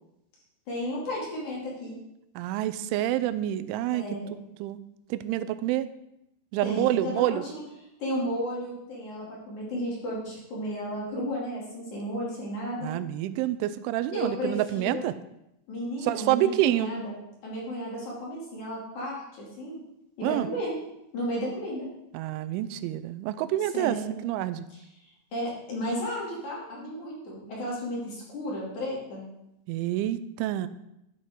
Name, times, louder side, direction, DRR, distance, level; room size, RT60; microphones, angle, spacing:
voice 1, 0.7-2.0 3.9-4.4 6.6-7.6 8.0-13.0 14.1-15.0 15.7-17.1 17.4-19.8 20.2-20.8 21.1-21.9 23.7-24.1 24.7-29.3, equal, 45° left, -4 dB, 3.5 m, -33 dB
voice 2, 2.4-4.0 4.6-4.8 5.1-5.9 6.5-7.4 12.8-15.1 16.0-16.9 20.2-20.5 22.1-24.0 24.2-24.6 29.7-30.7, right 13 dB, 85° right, 14 dB, 3.0 m, -27 dB
12.0 x 9.2 x 3.7 m, 0.84 s
omnidirectional pair, 5.4 m